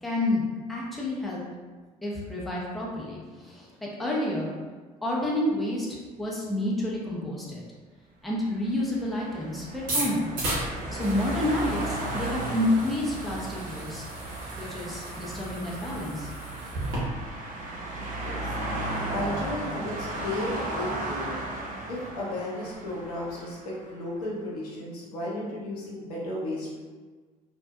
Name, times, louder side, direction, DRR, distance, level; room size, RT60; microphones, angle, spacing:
voice 1, 0.0-1.4 2.0-4.5 5.0-7.6 8.2-10.3 10.9-14.0 14.6-16.3, left 1 dB, ahead, -5 dB, 0.6 m, -29 dB
sound 1, 8.5-23.9, right 1 dB, 40° right, 0.6 m, -35 dB
sound 2, 9.8-17.0, right 2 dB, 60° right, 0.9 m, -35 dB
voice 2, 18.0-18.5 19.1-21.4 21.9-26.8, left 1 dB, 75° left, -5 dB, 0.6 m, -34 dB
2.6 x 2.1 x 2.3 m, 1.4 s
figure-of-eight pair, 55°, 20 cm